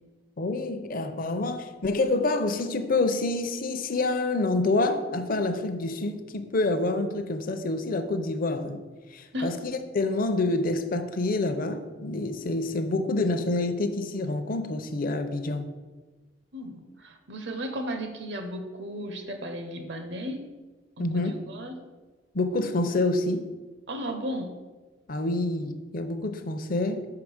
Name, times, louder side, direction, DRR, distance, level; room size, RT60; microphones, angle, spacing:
voice 1, 0.4-8.8 9.1-15.7 21.0-21.4 22.3-23.5 25.1-27.1, left 2 dB, 50° left, 8 dB, 0.6 m, -27 dB
voice 2, 16.5-20.5 21.0-21.7 23.9-24.5, equal, 70° right, 6 dB, 1.0 m, -35 dB
5.6 x 4.8 x 6.4 m, 1.3 s
head